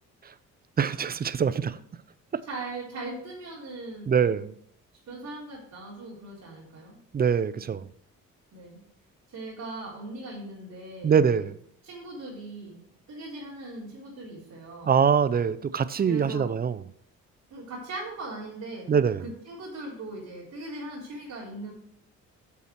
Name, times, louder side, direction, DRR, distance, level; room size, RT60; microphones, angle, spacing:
voice 1, 0.8-1.8 4.1-4.5 7.1-7.9 11.0-11.5 14.9-16.8 18.9-19.2, right 7 dB, 30° right, 0.5 m, -23 dB
voice 2, 2.4-4.4 5.1-7.0 7.6-7.7 8.5-8.8 9.3-11.5 11.8-12.8 13.1-15.0 16.1-16.5 17.5-21.7, right 2 dB, 65° right, 3.7 m, -39 dB
8.8 x 7.0 x 4.5 m
cardioid pair, 90°, 30 cm